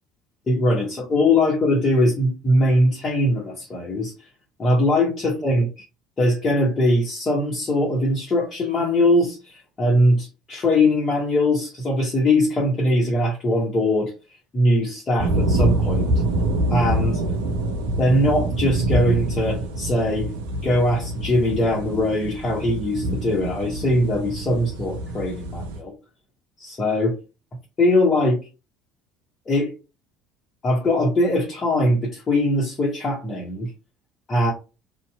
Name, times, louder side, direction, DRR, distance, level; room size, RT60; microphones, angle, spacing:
voice 1, 0.5-4.1 4.6-5.8 6.2-14.1 14.5-16.1 16.7-17.2 18.0-20.3 20.6-25.9 26.6-27.2 27.8-28.5 29.5-29.7 30.6-33.7 34.3-34.5, left 1 dB, 30° left, 1.0 m, -21 dB
sound 1, 15.2-25.8, right 1 dB, 70° right, 0.4 m, -25 dB
2.7 x 2.3 x 2.3 m
figure-of-eight pair, 60°, 0 cm